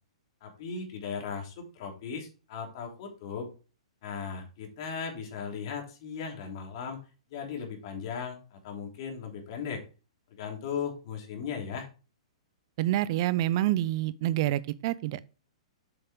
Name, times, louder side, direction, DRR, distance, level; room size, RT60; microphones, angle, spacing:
voice 1, 0.4-3.5 4.0-7.0 7.3-9.8 10.3-11.9, left 6 dB, 50° left, 3.3 m, -37 dB
voice 2, 12.8-15.2, right 14 dB, 50° right, 0.6 m, -27 dB
7.7 x 6.6 x 3.6 m
hypercardioid pair, 115°, 3 cm